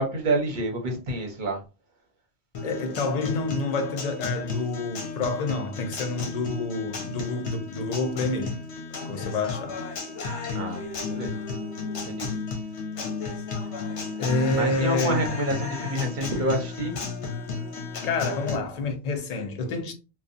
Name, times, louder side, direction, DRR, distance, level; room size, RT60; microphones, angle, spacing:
voice 1, 0.0-1.6 10.5-11.4 12.0-12.3 14.6-17.0, right 1 dB, 50° right, 0.8 m, -28 dB
Guitar, 2.5-18.6, left 4 dB, 75° left, 1.0 m, -33 dB
voice 2, 2.6-8.6 9.0-9.8 14.2-15.2 18.0-19.9, left 3 dB, 50° left, 0.5 m, -28 dB
2.6 x 2.2 x 2.4 m
omnidirectional pair, 1.2 m